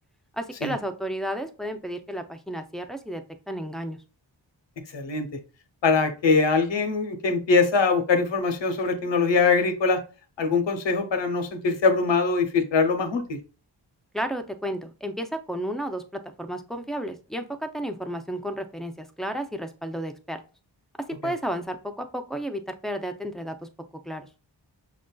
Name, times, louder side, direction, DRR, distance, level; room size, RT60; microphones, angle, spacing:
voice 1, 0.3-3.2 3.5-4.0 14.1-20.4 21.2-23.6 24.0-24.3, equal, ahead, 6 dB, 0.4 m, -32 dB
voice 2, 4.9-5.3 5.8-10.0 10.4-13.4, left 4 dB, 85° left, 7 dB, 0.8 m, -22 dB
6.2 x 2.5 x 2.2 m, 0.34 s
wide cardioid pair, 135°, 43 cm